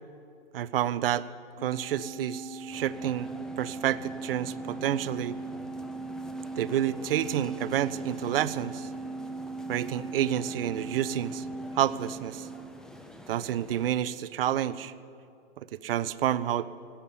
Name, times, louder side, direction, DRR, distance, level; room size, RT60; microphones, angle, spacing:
voice 1, 0.5-1.3 1.6-3.3 3.6-5.4 6.6-8.9 9.7-11.4 11.8-12.5 13.3-14.9 15.8-16.7, right 11 dB, 55° right, 17 dB, 0.6 m, -29 dB
Organ, 1.6-12.8, right 3 dB, 40° left, 2.6 m, -39 dB
sound 1, 2.7-14.0, equal, ahead, 0.8 m, -47 dB
17.5 x 8.7 x 8.9 m, 2.5 s
figure-of-eight pair, 110°, 35 cm